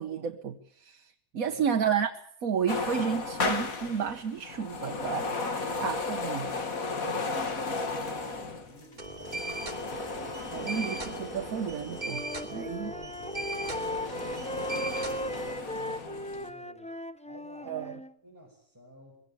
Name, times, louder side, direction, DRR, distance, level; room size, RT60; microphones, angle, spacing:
voice 1, 0.0-2.1 2.4-5.3 5.7-6.5 10.5-12.2 12.5-12.9 17.7-18.0, right 7 dB, 70° right, 6 dB, 1.5 m, -31 dB
voice 2, 1.4-1.8 6.9-10.7 12.4-16.9 17.2-17.9 18.2-19.1, equal, 10° right, -2 dB, 5.8 m, -51 dB
sound 1, 2.7-12.5 13.1-16.5, left 3 dB, 70° left, 2.6 m, -35 dB
sound 2, 9.0-15.5, right 2 dB, 30° right, 2.9 m, -39 dB
Wind instrument woodwind instrument, 11.7-18.1, equal, 10° left, 0.4 m, -37 dB
22.0 x 17.0 x 8.8 m, 0.68 s
omnidirectional pair, 1.6 m